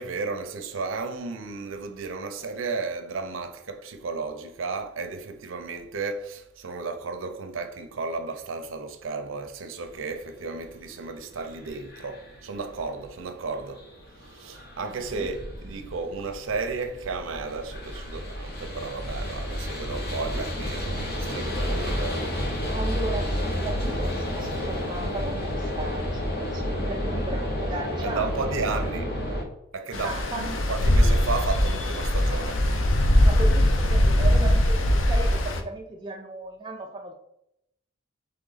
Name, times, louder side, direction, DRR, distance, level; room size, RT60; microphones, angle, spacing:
voice 1, 0.0-13.9 14.2-22.3 28.0-29.1 29.7-32.7, right 4 dB, 80° right, 0.5 m, -33 dB
sound 1, 9.8-29.4, equal, 50° left, 0.9 m, -31 dB
voice 2, 22.7-28.4 28.7-28.8 30.0-30.6 33.2-37.1, right 2 dB, 20° right, 0.3 m, -35 dB
Stream, 29.9-35.6, left 1 dB, 75° left, 0.6 m, -21 dB
3.9 x 3.3 x 3.9 m
head